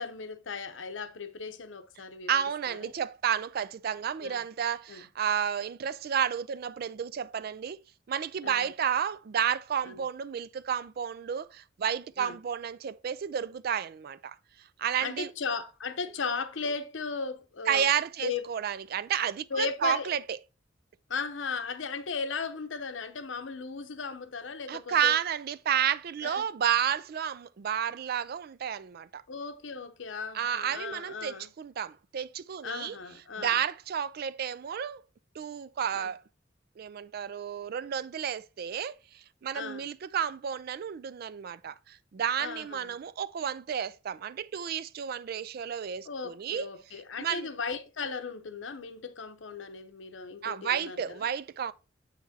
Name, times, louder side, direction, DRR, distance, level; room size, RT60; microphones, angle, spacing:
voice 1, 0.0-2.4 2.7-2.9 4.2-4.4 4.9-5.0 8.4-8.7 9.8-10.0 12.2-12.4 15.0-17.9 18.2-18.4 19.5-20.1 21.1-25.1 26.2-26.5 29.3-31.5 32.6-33.6 35.9-36.1 39.5-39.9 42.4-43.0 46.1-51.2, left 5 dB, 90° left, 0.8 m, -36 dB
voice 2, 2.3-7.8 8.1-14.4 14.8-15.3 17.7-20.2 24.7-29.2 30.3-33.0 33.4-35.0 35.4-36.2 36.8-46.7 47.2-47.5 50.4-51.7, right 8 dB, 55° right, 0.3 m, -31 dB
7.3 x 5.9 x 2.7 m
head